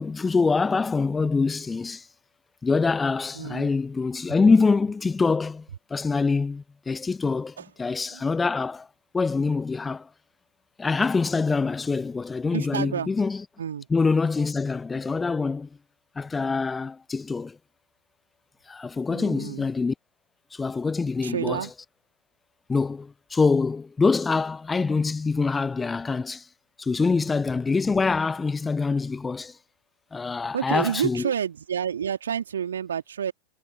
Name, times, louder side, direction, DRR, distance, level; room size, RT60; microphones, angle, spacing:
voice 1, 0.0-2.1 2.6-8.9 9.1-10.1 10.8-13.4 13.9-15.7 16.2-17.6 18.7-19.9 20.5-21.8 22.7-26.5 26.8-29.6 30.1-31.3, left 4 dB, 15° left, 0.8 m, -25 dB
voice 2, 3.3-3.7 7.6-7.7 8.1-8.2 12.5-13.1 13.6-13.9 19.1-19.7 21.2-21.7 30.5-33.3, right 8 dB, 65° right, 3.1 m, -29 dB
figure-of-eight pair, 90°, 0 cm